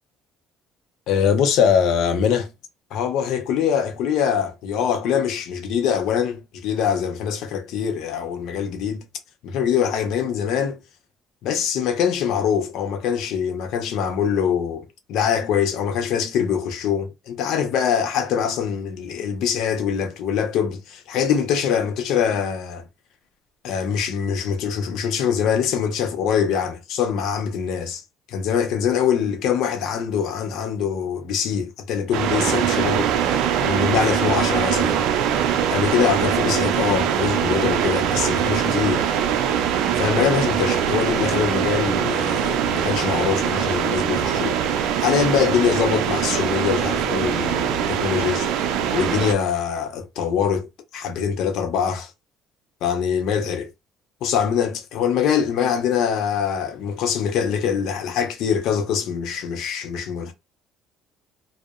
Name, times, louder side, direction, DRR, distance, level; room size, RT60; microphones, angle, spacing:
voice 1, 1.1-2.5 2.9-9.0 9.4-10.8 11.4-22.9 23.6-28.0 28.3-33.1 33.6-35.0 35.7-39.0 40.0-44.6 45.0-48.5 48.9-50.7 50.9-52.1 52.8-53.7 54.2-60.3, left 7 dB, 70° left, 0.5 m, -23 dB
sound 1, 32.1-49.3, right 9 dB, 80° right, 0.4 m, -22 dB
2.6 x 2.0 x 2.3 m
cardioid pair, 145°, 0 cm